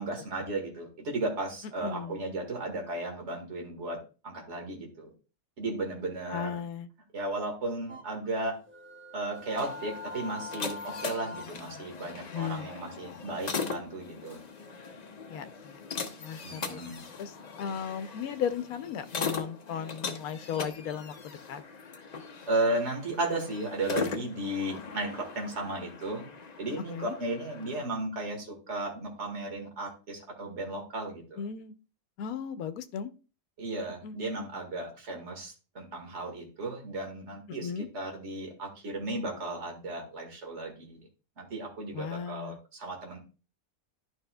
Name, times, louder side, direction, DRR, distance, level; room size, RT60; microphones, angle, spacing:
voice 1, 0.0-4.0 4.2-5.1 5.6-6.6 7.1-8.5 9.1-14.4 16.4-17.0 22.5-25.1 25.3-26.2 26.6-31.4 33.6-41.0 41.4-43.2, right 2 dB, 50° right, 1 dB, 1.9 m, -35 dB
voice 2, 1.8-2.2 6.3-6.9 12.3-12.7 15.3-15.8 16.2-16.8 17.2-21.6 26.9-27.2 31.4-31.7 32.2-33.1 34.0-34.5 37.5-37.9 41.9-42.6, left 7 dB, 80° left, 11 dB, 1.1 m, -36 dB
sound 1, 7.9-11.8 14.9-15.4, left 3 dB, 10° right, 0.8 m, -43 dB
sound 2, 9.3-27.9, left 5 dB, 40° left, 0.6 m, -40 dB
11.5 x 5.4 x 2.2 m, 0.34 s
omnidirectional pair, 1.5 m